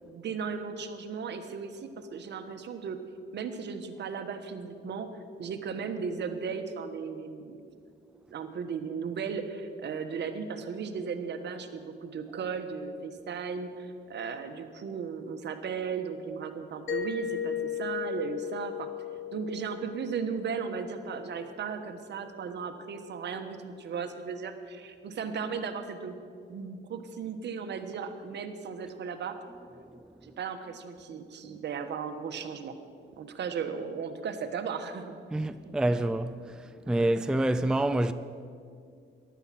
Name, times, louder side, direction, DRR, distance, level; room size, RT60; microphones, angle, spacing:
voice 1, 0.0-3.0 3.3-5.1 5.4-7.7 8.3-18.9 19.3-26.2 26.5-29.4 30.2-32.7 33.2-35.2 35.7-36.0 36.9-37.1, right 6 dB, 60° right, 1.3 m, -36 dB
Mallet percussion, 16.9-21.5, left 10 dB, 65° left, 1.4 m, -36 dB
voice 2, 35.3-36.3 36.9-38.1, right 1 dB, 5° right, 0.4 m, -26 dB
14.5 x 11.0 x 6.0 m
cardioid pair, 90°, 20 cm